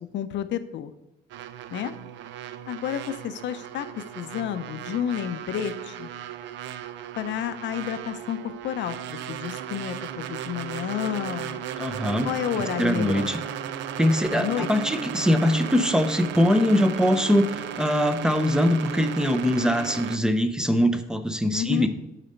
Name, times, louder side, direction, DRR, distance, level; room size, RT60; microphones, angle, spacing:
voice 1, 0.1-0.9 1.7-1.9 2.7-6.1 7.2-11.7 12.2-13.3 14.3-14.7 21.5-21.9, left 10 dB, 75° left, 11 dB, 0.6 m, -30 dB
sound 1, 1.3-20.2, right 10 dB, 80° right, 0.5 m, -35 dB
voice 2, 11.8-12.3 12.6-13.4 14.0-21.9, equal, 5° right, 9 dB, 0.6 m, -22 dB
8.9 x 4.2 x 5.2 m, 0.91 s
cardioid pair, 115°, 19 cm